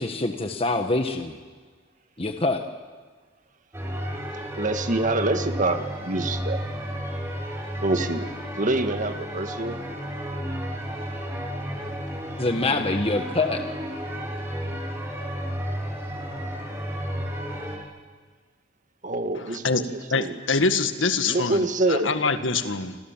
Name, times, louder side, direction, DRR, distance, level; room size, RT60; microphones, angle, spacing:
voice 1, 0.0-1.4 2.2-2.7 12.4-13.6, left 2 dB, 30° left, 6 dB, 1.4 m, -25 dB
sound 1, 3.7-17.8, equal, 15° right, 5.1 m, -32 dB
voice 2, 4.6-6.6 7.8-9.8 19.0-19.7 19.9-20.4 21.3-22.1, right 2 dB, 45° right, 7 dB, 1.8 m, -26 dB
voice 3, 19.4-19.8 20.1-23.0, left 4 dB, 90° left, 9 dB, 1.8 m, -25 dB
28.5 x 26.5 x 7.5 m, 1.5 s
head